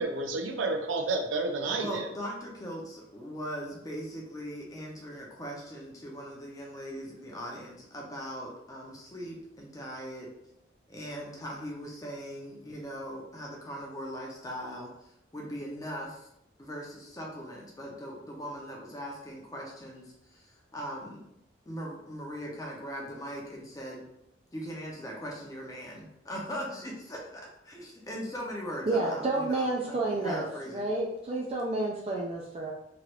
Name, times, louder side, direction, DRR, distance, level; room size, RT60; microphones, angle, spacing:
voice 1, 0.0-2.1, right 3 dB, 85° right, 3 dB, 0.5 m, -30 dB
voice 2, 1.8-10.3 10.9-16.3 16.6-21.2 21.7-24.0 24.5-30.9, equal, 20° left, -2 dB, 0.6 m, -40 dB
voice 3, 28.9-32.7, right 2 dB, 30° right, -2 dB, 0.3 m, -30 dB
3.1 x 2.4 x 3.0 m, 0.80 s
head